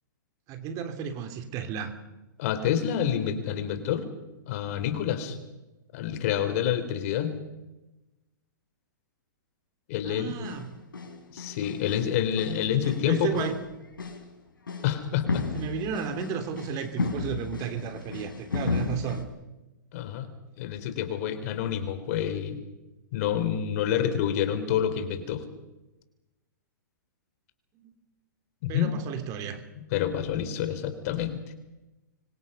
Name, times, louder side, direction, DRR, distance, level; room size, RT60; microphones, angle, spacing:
voice 1, 0.5-1.9 10.0-10.7 13.1-13.6 15.5-19.2 27.8-27.9 28.7-29.6, right 7 dB, 30° right, 8 dB, 3.1 m, -33 dB
voice 2, 2.4-4.1 4.5-5.4 5.9-7.3 9.9-10.3 11.3-13.5 14.8-15.5 19.9-20.3 20.6-22.6 23.1-25.4 28.6-28.9 29.9-31.4, left 9 dB, 45° left, 10 dB, 3.6 m, -28 dB
sound 1, 10.3-10.7 10.9-12.1 12.4-13.6 13.9-14.3 14.7-14.9 15.3-19.2, left 4 dB, 85° left, 5.2 m, -34 dB
25.5 x 24.5 x 5.6 m, 1.0 s
hypercardioid pair, 135°, 11 cm